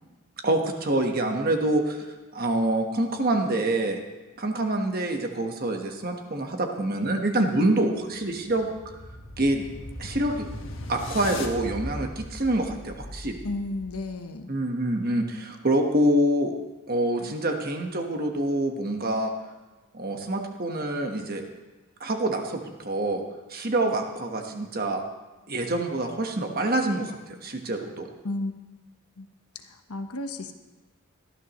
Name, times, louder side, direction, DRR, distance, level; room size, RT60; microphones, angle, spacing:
voice 1, 0.4-2.1 2.3-4.0 4.4-9.0 9.4-9.6 10.0-10.5 10.9-13.4 14.5-16.5 16.9-19.3 19.9-21.4 22.0-23.2 23.5-25.0 25.5-28.1, right 1 dB, 40° right, 3 dB, 1.3 m, -26 dB
sound 1, 8.0-14.1, left 1 dB, 60° left, 1.5 m, -39 dB
voice 2, 13.4-14.5 28.2-28.5 29.2-29.3 29.6-30.5, left 2 dB, 85° left, 7 dB, 1.1 m, -33 dB
18.5 x 12.5 x 3.1 m, 1.2 s
head